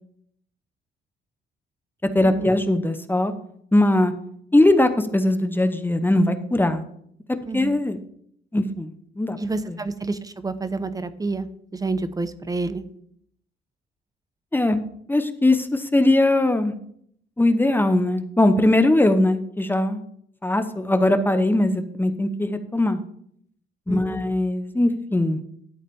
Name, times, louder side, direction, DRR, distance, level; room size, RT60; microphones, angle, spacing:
voice 1, 2.1-3.3 3.7-4.1 4.5-6.8 7.5-8.0 8.5-8.9 9.2-9.4 9.7-9.8 14.5-14.8 15.1-16.7 17.4-20.0 20.4-23.0 23.9-25.4, left 1 dB, 10° left, 9 dB, 0.9 m, -20 dB
voice 2, 7.5-7.8 9.4-11.5 11.8-12.8 23.9-24.2, right 3 dB, 20° right, 12 dB, 0.8 m, -28 dB
12.5 x 4.1 x 6.9 m, 0.68 s
cardioid pair, 90°, 20 cm